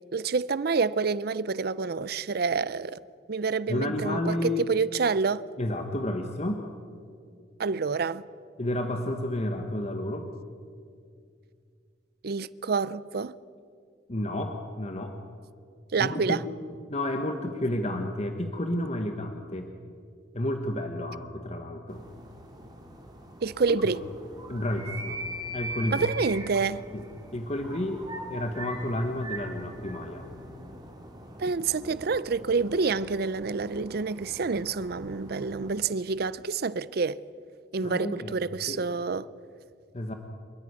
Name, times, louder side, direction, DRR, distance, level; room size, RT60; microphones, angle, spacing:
voice 1, 0.1-3.0 3.3-5.4 7.6-8.2 12.2-13.4 15.9-16.4 23.4-24.0 25.9-26.8 31.4-37.2 37.7-39.3, right 4 dB, 55° right, 0.5 m, -28 dB
voice 2, 3.7-4.6 5.6-6.6 8.6-10.3 14.1-15.2 16.0-16.4 16.9-19.7 20.3-22.0 23.7-23.8 24.5-25.2 25.5-26.1 26.9-27.0 27.3-30.2 37.8-38.4 38.7-38.8 39.9-40.1, left 1 dB, 35° left, 1.2 m, -31 dB
sound 1, 21.9-35.8, right 1 dB, 20° right, 2.7 m, -42 dB
28.0 x 10.5 x 9.7 m
head